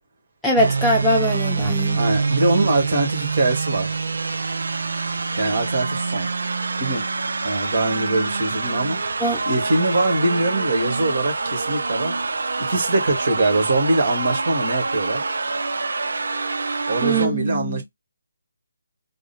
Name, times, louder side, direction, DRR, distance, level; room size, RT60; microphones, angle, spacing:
voice 1, 0.4-2.0 9.2-9.4 17.0-17.8, right 1 dB, ahead, 0.9 m, -21 dB
sound 1, 0.6-17.3, right 3 dB, 70° right, 0.5 m, -25 dB
voice 2, 1.9-4.0 5.4-6.3 6.8-7.1 7.4-9.0 9.5-15.2 16.9-17.8, right 2 dB, 50° right, 1.6 m, -22 dB
3.6 x 2.1 x 4.1 m
figure-of-eight pair, 150°, 0 cm